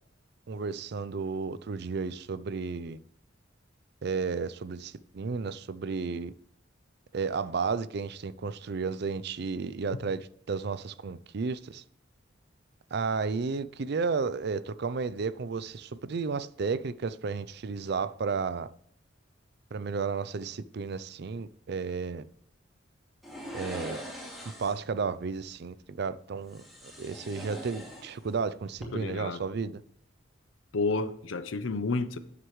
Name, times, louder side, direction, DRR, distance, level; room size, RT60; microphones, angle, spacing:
voice 1, 0.5-3.0 4.0-6.3 7.1-11.8 12.9-18.7 19.7-22.3 23.5-24.0 24.6-26.6 27.0-29.8, right 5 dB, 55° right, 0.5 m, -33 dB
sound 1, 23.2-24.9 26.5-28.4 28.7-28.9, equal, ahead, 2.5 m, -42 dB
voice 2, 28.9-29.4 30.7-32.2, left 3 dB, 80° left, 0.7 m, -30 dB
11.0 x 7.9 x 3.1 m
head